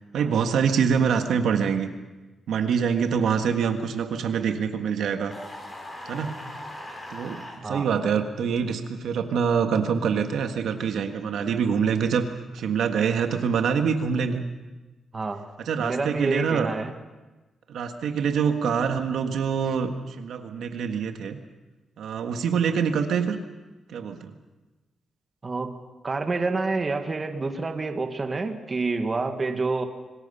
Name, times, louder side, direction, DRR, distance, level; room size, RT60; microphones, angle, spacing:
voice 1, 0.1-1.9 2.5-5.3 6.0-6.4 7.1-12.3 12.5-14.4 15.6-16.7 17.7-21.4 22.0-23.4 23.9-24.3, right 6 dB, 75° right, 6 dB, 1.7 m, -25 dB
sound 1, 5.3-7.6, left 1 dB, 25° left, 5.0 m, -39 dB
voice 2, 15.1-15.4 15.8-16.9 25.4-25.7 26.0-29.9, right 3 dB, 30° right, 6 dB, 1.7 m, -28 dB
26.5 x 20.0 x 5.7 m, 1.2 s
cardioid pair, 135°, 0 cm